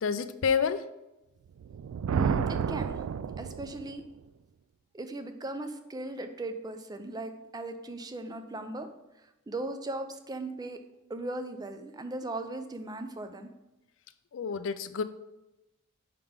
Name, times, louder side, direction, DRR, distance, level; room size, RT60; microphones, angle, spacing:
voice 1, 0.0-0.8 14.3-15.0, left 6 dB, 60° left, 12 dB, 0.4 m, -28 dB
Thunder, 1.6-4.0, right 7 dB, 80° right, 0.3 m, -31 dB
voice 2, 2.1-3.0 3.4-4.0 4.9-8.9 9.5-10.8 11.1-13.5, right 2 dB, 20° right, 8 dB, 0.4 m, -38 dB
5.8 x 3.6 x 5.0 m, 0.97 s
head